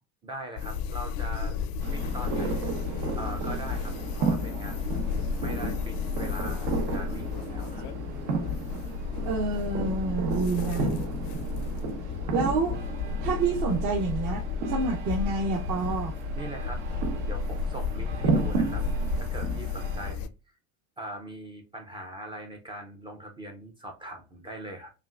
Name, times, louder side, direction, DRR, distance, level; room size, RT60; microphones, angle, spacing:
voice 1, 0.2-1.6 1.9-2.7 3.1-5.0 5.3-7.8 9.7-9.9 12.2-12.3 16.4-16.8 17.3-18.8 19.2-20.3 21.0-24.9, right 1 dB, 15° right, 0.3 m, -41 dB
sound 1, 0.6-20.3, left 5 dB, 75° left, 0.5 m, -32 dB
sound 2, 1.8-20.1, right 4 dB, 75° right, 1.0 m, -34 dB
voice 2, 9.2-10.9 12.3-12.8 13.2-16.1, right 4 dB, 50° right, 0.8 m, -28 dB
5.6 x 2.5 x 2.3 m
cardioid pair, 160°, 42 cm